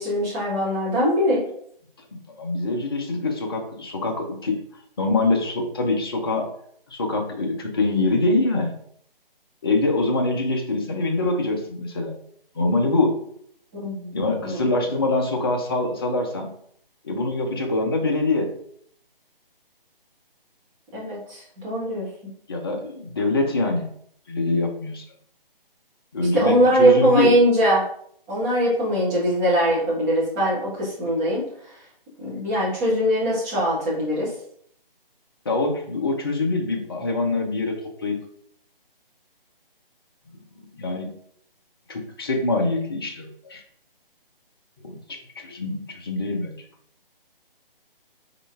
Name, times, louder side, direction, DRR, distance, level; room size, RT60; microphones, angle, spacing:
voice 1, 0.0-1.4 13.7-14.7 20.9-22.1 26.3-27.8 28.3-31.4 32.2-34.3, right 1 dB, 15° right, -7 dB, 1.5 m, -21 dB
voice 2, 2.1-4.6 5.0-6.5 6.9-8.7 9.6-12.2 12.5-13.2 14.1-16.5 17.0-18.5 22.5-23.9 24.3-25.0 26.1-27.3 35.4-38.2 40.7-41.1 41.9-43.6 44.8-46.6, left 2 dB, 25° left, 1 dB, 0.6 m, -24 dB
4.1 x 3.7 x 3.4 m, 0.65 s
figure-of-eight pair, 150°, 29 cm